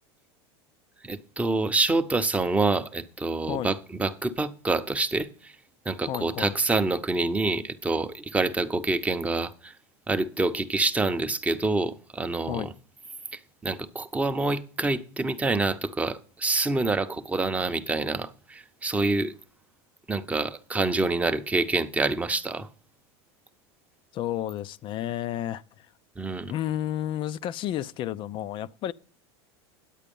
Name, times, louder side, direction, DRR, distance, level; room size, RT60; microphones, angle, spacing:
voice 1, 1.0-5.6 5.8-9.7 10.1-12.7 13.3-19.3 20.1-22.7 26.2-26.5, right 3 dB, 10° right, 0.7 m, -27 dB
voice 2, 6.1-6.5 12.5-12.7 24.1-25.9 26.5-28.9, left 11 dB, 35° left, 0.5 m, -31 dB
10.0 x 8.2 x 5.3 m
supercardioid pair, 120°, 14 cm